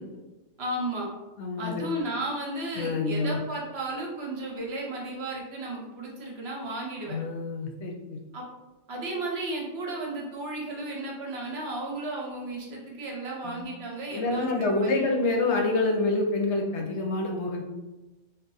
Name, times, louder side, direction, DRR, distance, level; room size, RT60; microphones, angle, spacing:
voice 1, 0.6-1.1 1.6-7.2 8.3-8.4 8.9-15.3, right 2 dB, 60° right, -2 dB, 0.9 m, -34 dB
voice 2, 1.4-1.9 2.7-3.4 7.1-8.2 13.4-13.6 14.1-17.6, left 3 dB, 70° left, 1 dB, 0.8 m, -27 dB
2.4 x 2.2 x 3.9 m, 1.1 s
omnidirectional pair, 1.2 m